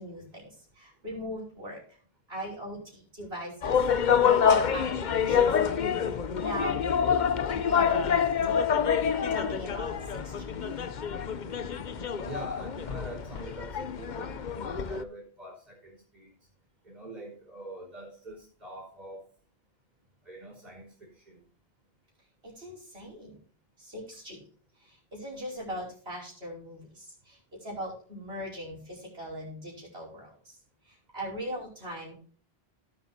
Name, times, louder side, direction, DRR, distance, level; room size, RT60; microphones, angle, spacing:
voice 1, 0.0-1.8 2.3-3.8 4.2-6.8 7.5-10.5 22.4-23.4 23.8-24.4 24.8-30.6 30.9-32.1, equal, 75° right, 5.4 m, -40 dB
sound 1, 3.6-15.0, left 7 dB, 50° left, 0.8 m, -27 dB
voice 2, 12.2-16.3 16.8-19.3 20.2-21.4, right 1 dB, 45° right, 5.1 m, -44 dB
17.5 x 8.5 x 2.7 m
omnidirectional pair, 1.0 m